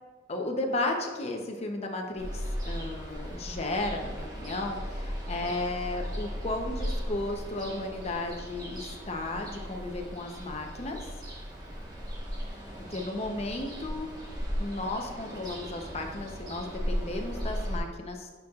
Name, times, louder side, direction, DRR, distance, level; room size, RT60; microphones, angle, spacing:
voice 1, 0.3-11.1 12.9-14.1 14.6-18.3, left 2 dB, 35° left, 3 dB, 0.7 m, -34 dB
Ocean, 2.2-17.8, equal, 20° right, 1.2 m, -37 dB
9.0 x 6.2 x 2.4 m, 1.4 s
head